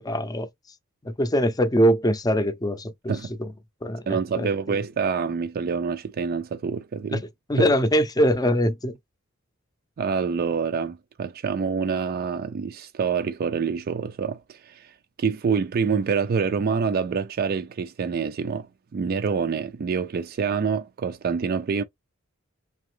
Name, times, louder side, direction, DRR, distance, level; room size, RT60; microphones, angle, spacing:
voice 1, 0.0-0.5 1.0-3.1 3.4-3.5 3.8-4.8 7.1-7.2 7.5-9.0, equal, 20° left, 0.5 m, -23 dB
voice 2, 4.1-7.2 7.6-7.7 10.0-18.7 18.9-21.8, right 5 dB, 45° right, 0.3 m, -26 dB
3.8 x 2.9 x 3.2 m
head